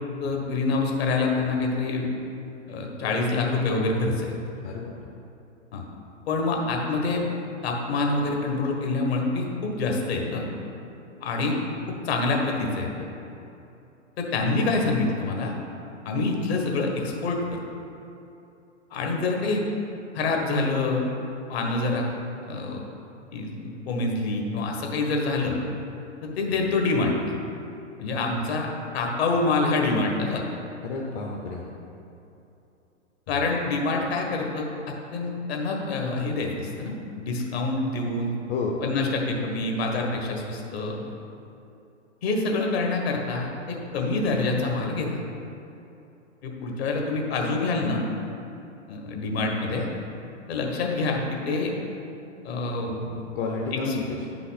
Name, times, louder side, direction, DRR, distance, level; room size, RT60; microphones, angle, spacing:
voice 1, 0.2-2.1 2.7-4.3 5.7-5.8 6.3-7.2 7.6-10.5 11.2-11.6 11.9-12.9 14.2-15.5 16.0-17.6 18.9-19.6 20.1-21.0 21.5-22.8 23.3-25.6 26.2-27.1 28.0-28.7 28.9-30.4 33.3-38.3 38.8-41.1 42.2-45.1 46.4-48.0 48.9-49.9 50.5-51.7 52.4-53.2 53.9-54.0, left 3 dB, 55° left, 1 dB, 1.6 m, -26 dB
voice 2, 4.6-4.9 30.8-31.7 33.3-33.5 38.5-38.8 53.3-54.3, left 3 dB, 35° left, -1 dB, 0.8 m, -30 dB
9.6 x 5.7 x 4.2 m, 2.8 s
hypercardioid pair, 115°, 37 cm